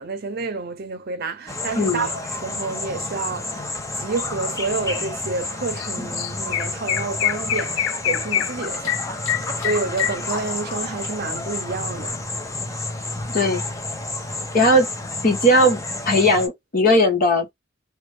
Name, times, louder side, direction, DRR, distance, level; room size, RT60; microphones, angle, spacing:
voice 1, 0.0-9.2 9.6-12.2, right 3 dB, 55° right, 0.6 m, -29 dB
sound 1, 1.5-16.5, left 2 dB, 15° left, 0.6 m, -30 dB
voice 2, 1.8-2.1 13.3-13.6 14.5-14.9 15.2-15.8 16.0-17.5, left 1 dB, 50° left, 1.3 m, -17 dB
Chirp tweet, 5.8-5.9 6.2-10.7, left 11 dB, 80° left, 0.3 m, -25 dB
3.0 x 2.4 x 3.2 m
head